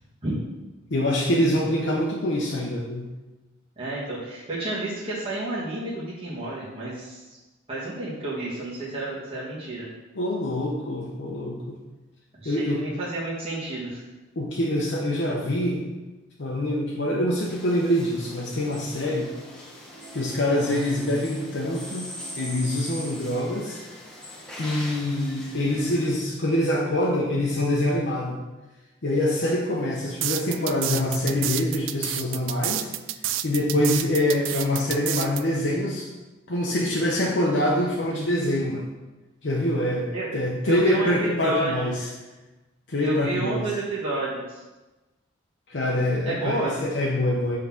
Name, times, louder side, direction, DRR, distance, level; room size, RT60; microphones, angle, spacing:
voice 1, 0.9-3.1 10.2-11.8 12.4-12.8 14.4-15.8 16.4-19.3 20.1-22.1 22.4-23.8 24.6-28.4 29.0-32.9 33.4-36.1 36.5-38.9 39.4-42.0 42.9-43.6 45.7-47.6, left 1 dB, 60° left, -3 dB, 0.8 m, -25 dB
voice 2, 3.8-7.4 7.7-9.9 12.3-14.0 40.1-40.3 40.6-41.9 43.0-44.6 46.2-46.8, right 2 dB, 30° right, -9 dB, 1.4 m, -30 dB
sound 1, 17.5-26.2, equal, 5° left, 1.0 m, -41 dB
sound 2, 30.2-35.4, right 13 dB, 75° right, 0.3 m, -29 dB
5.5 x 3.8 x 5.8 m, 1.1 s
head